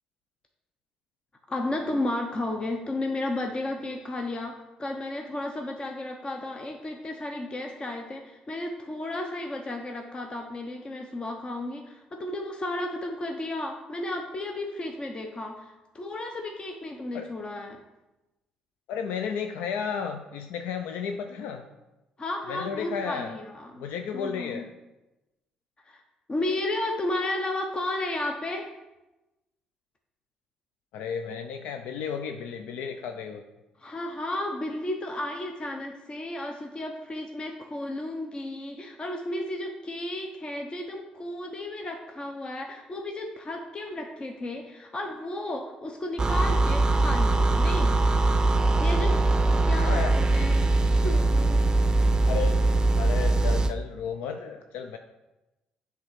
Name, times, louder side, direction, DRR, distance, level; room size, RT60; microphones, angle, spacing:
voice 1, 1.5-17.8 22.2-23.8 24.1-24.6 25.9-26.0 26.3-28.7 33.8-48.0 48.6-51.7, left 1 dB, 35° left, 3 dB, 0.9 m, -33 dB
voice 2, 18.9-21.7 22.5-23.4 23.8-24.7 30.9-33.4 49.8-50.1 52.3-52.6 53.0-55.0, left 7 dB, 80° left, 6 dB, 0.5 m, -33 dB
sound 1, 46.2-53.7, right 2 dB, 25° right, 0.6 m, -22 dB
7.6 x 3.5 x 5.8 m, 1.0 s
supercardioid pair, 65°, 3 cm